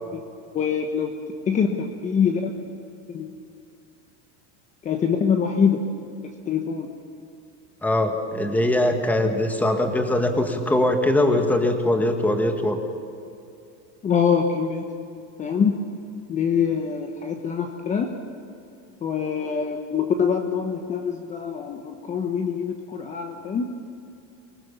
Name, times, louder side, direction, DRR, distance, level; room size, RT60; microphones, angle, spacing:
voice 1, 0.5-1.1 1.5-2.6 3.1-3.3 4.8-5.8 6.5-6.9 14.0-14.9 15.4-15.9 16.3-18.1 19.0-23.7, left 6 dB, 20° left, 5 dB, 1.1 m, -24 dB
voice 2, 7.8-12.8, left 1 dB, 5° left, 5 dB, 1.5 m, -21 dB
25.0 x 19.0 x 7.2 m, 2.6 s
cardioid pair, 165°, 34 cm